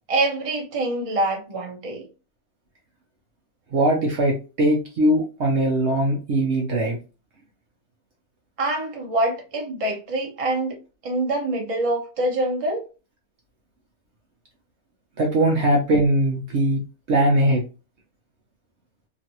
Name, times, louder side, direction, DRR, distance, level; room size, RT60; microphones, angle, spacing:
voice 1, 0.1-2.1 8.6-12.8, right 2 dB, 30° right, 0.8 m, -25 dB
voice 2, 3.7-7.0 15.2-16.8 17.1-17.6, right 1 dB, 60° right, 0.9 m, -20 dB
3.0 x 2.5 x 2.9 m
omnidirectional pair, 1.5 m